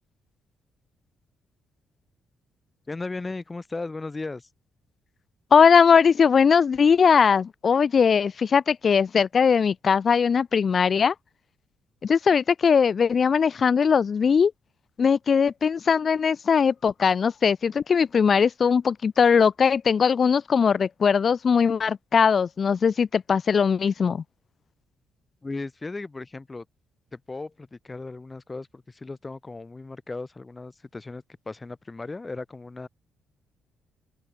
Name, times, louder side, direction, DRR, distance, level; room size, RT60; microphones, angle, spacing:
voice 1, 2.9-4.5 25.4-26.7 27.1-32.9, left 3 dB, 25° left, 7.3 m, -36 dB
voice 2, 5.5-11.1 12.0-14.5 15.0-24.2, left 6 dB, 40° left, 1.9 m, -20 dB
figure-of-eight pair, 40°, 0 cm